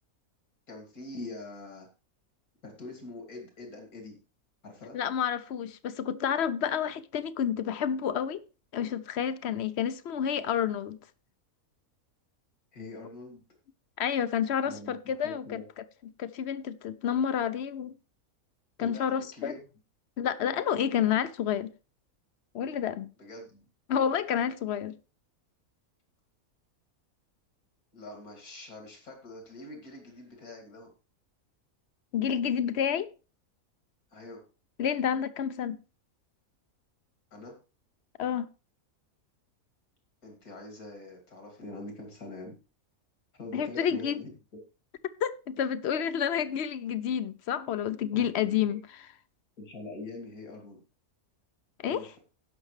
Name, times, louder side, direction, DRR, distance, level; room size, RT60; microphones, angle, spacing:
voice 1, 0.7-1.9 2.6-4.2 4.6-5.0 12.7-13.4 14.6-15.0 15.2-15.6 18.8-19.6 23.2-23.6 27.9-30.9 34.1-34.4 37.3-37.6 40.2-42.6 43.3-44.3 48.1-48.2 49.6-50.8 51.8-52.2, left 2 dB, 85° left, 3.1 m, -44 dB
voice 2, 4.9-8.4 8.7-11.0 14.0-15.6 16.2-17.9 18.8-19.5 20.2-21.7 22.5-23.1 23.9-24.9 32.1-33.1 34.8-35.8 38.2-38.5 43.5-44.2 45.2-48.8 51.8-52.1, left 8 dB, 60° left, 0.8 m, -29 dB
17.0 x 6.1 x 3.2 m
omnidirectional pair, 1.5 m